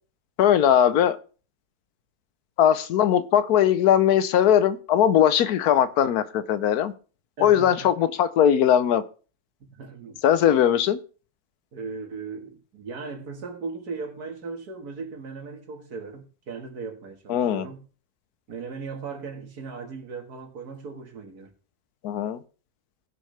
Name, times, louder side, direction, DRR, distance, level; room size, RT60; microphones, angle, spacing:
voice 1, 0.4-1.2 2.6-6.9 7.4-9.0 10.2-11.0 17.3-17.6 22.0-22.4, left 10 dB, 90° left, 1.3 m, -20 dB
voice 2, 7.4-7.9 9.6-10.2 11.7-17.9 18.5-21.5, right 4 dB, 85° right, 2.2 m, -37 dB
18.0 x 6.5 x 3.3 m
omnidirectional pair, 1.6 m